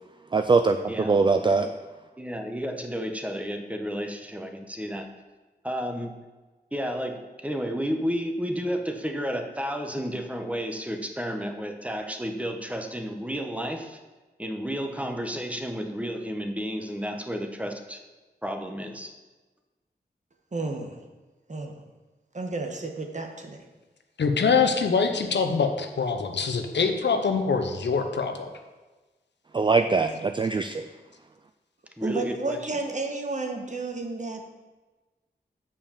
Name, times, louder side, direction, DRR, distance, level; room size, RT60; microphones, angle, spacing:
voice 1, 0.3-1.7 29.5-30.8, right 4 dB, 25° right, 8 dB, 0.4 m, -22 dB
voice 2, 0.9-1.7 2.2-5.1 5.6-6.1 6.7-14.0 14.4-18.0 18.4-19.1 32.0-32.6, equal, 5° right, 4 dB, 1.1 m, -32 dB
voice 3, 20.5-21.0 21.5-21.8 22.3-23.6 32.0-34.5, right 3 dB, 45° right, 3 dB, 1.3 m, -32 dB
voice 4, 24.2-28.5, left 5 dB, 85° left, 6 dB, 0.9 m, -24 dB
6.9 x 5.4 x 7.2 m, 1.2 s
cardioid pair, 60°, 18 cm